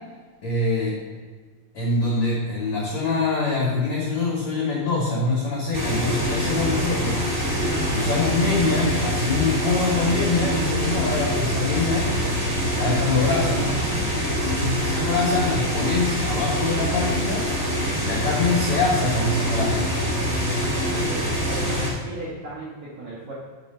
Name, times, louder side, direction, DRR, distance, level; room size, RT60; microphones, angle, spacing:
voice 1, 0.4-1.0 1.7-7.2 7.9-12.1 12.7-13.7 14.4-17.5 18.0-19.9, left 3 dB, 80° left, -4 dB, 1.5 m, -24 dB
sound 1, 5.7-21.9, equal, 25° right, 1.5 m, -25 dB
voice 2, 14.4-14.9 20.9-23.3, right 2 dB, 70° right, -7 dB, 1.7 m, -36 dB
8.6 x 5.3 x 5.5 m, 1.5 s
omnidirectional pair, 5.3 m